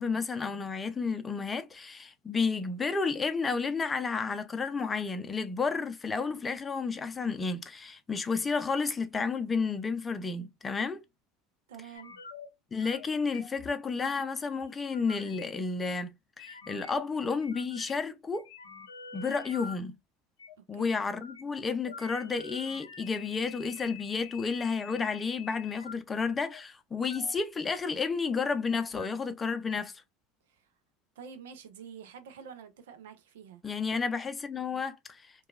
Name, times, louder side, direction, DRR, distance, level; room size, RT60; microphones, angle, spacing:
voice 1, 0.0-11.0 12.7-16.1 16.4-18.5 19.1-19.9 20.7-29.9 33.6-35.3, left 5 dB, 25° left, 0.5 m, -31 dB
voice 2, 11.7-12.1 20.6-21.0 30.5-30.7 31.2-34.0, right 7 dB, 75° right, 0.5 m, -48 dB
sound 1, 11.9-12.5 12.8-13.1 13.3-13.7 14.6-15.5 16.4-17.1 17.4-18.1 18.3-19.8 20.4-20.6 21.1-21.4 21.9-25.9 26.4-26.6 27.1-27.4 27.7-28.5 28.8-29.1 29.7-29.8, left 5 dB, 85° left, 0.5 m, -47 dB
2.8 x 2.3 x 2.4 m
hypercardioid pair, 80°, 0 cm